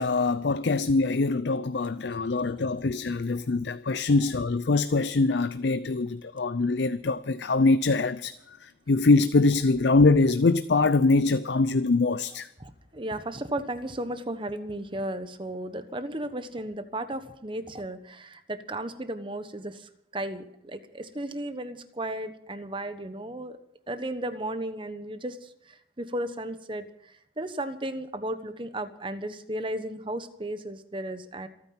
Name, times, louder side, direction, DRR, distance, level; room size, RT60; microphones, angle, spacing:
voice 1, 0.0-8.3 8.6-12.5, left 3 dB, 60° left, 0.5 m, -23 dB
voice 2, 12.6-23.6 23.9-26.8 27.4-31.5, right 1 dB, 25° right, 1.1 m, -35 dB
26.0 x 9.4 x 5.9 m
head